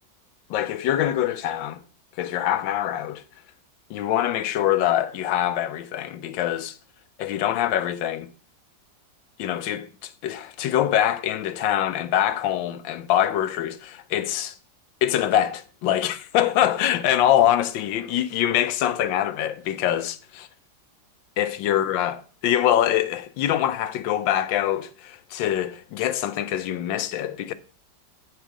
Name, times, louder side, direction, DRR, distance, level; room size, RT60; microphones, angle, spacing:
voice 1, 0.5-1.8 2.2-3.2 3.9-6.8 7.2-8.3 9.4-14.5 15.0-20.5 21.4-27.5, left 11 dB, 85° left, 1.4 m, -24 dB
9.2 x 4.6 x 5.9 m
omnidirectional pair, 2.0 m